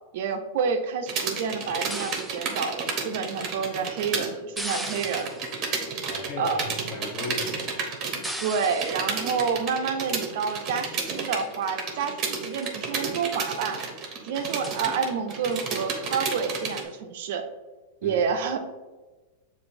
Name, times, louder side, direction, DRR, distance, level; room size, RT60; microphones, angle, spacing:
voice 1, 0.1-5.3 6.4-6.7 8.4-13.8 14.2-17.4 18.0-18.6, right 6 dB, 65° right, 0.4 m, -29 dB
sound 1, 1.1-4.3 4.6-16.8, right 5 dB, 35° right, 0.8 m, -32 dB
sound 2, 1.9-2.5 4.6-5.6 8.2-9.1 10.1-10.5 11.1-11.7 12.0-12.1 12.4-12.8 13.4-13.8 14.1-14.2 14.4-14.9 15.5-15.8 16.6-16.9, equal, ahead, 0.3 m, -38 dB
voice 2, 6.0-7.9 18.0-18.2, left 3 dB, 35° left, 0.8 m, -37 dB
6.7 x 2.5 x 2.6 m
hypercardioid pair, 125°, 0 cm